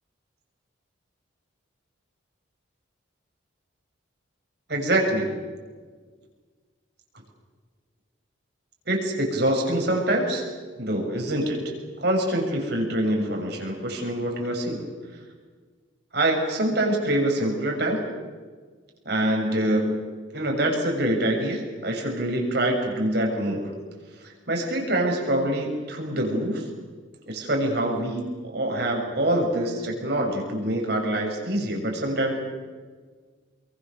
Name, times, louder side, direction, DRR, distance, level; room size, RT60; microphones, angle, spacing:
voice 1, 4.7-5.3 8.9-10.5 10.8-11.6 12.0-14.9 16.1-18.0 19.0-20.0 20.3-23.7 24.2-26.6 27.3-32.4, right 1 dB, 55° right, 1 dB, 6.8 m, -25 dB
29.0 x 24.0 x 6.9 m, 1.5 s
head